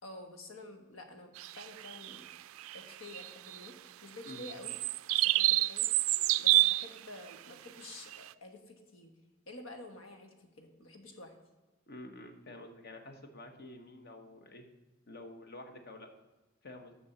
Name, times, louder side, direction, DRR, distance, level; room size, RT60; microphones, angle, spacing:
voice 1, 0.0-2.2 2.7-4.8 5.1-5.9 6.4-9.1 9.5-11.3, left 2 dB, 90° left, 5 dB, 1.4 m, -49 dB
sound 1, 1.4-3.7 4.3-7.0 7.3-7.4 8.1-8.2, right 17 dB, 80° right, 0.3 m, -28 dB
voice 2, 11.9-14.7 15.1-16.1 16.6-16.9, left 2 dB, 50° left, 6 dB, 1.2 m, -49 dB
7.0 x 6.2 x 7.0 m, 1.2 s
head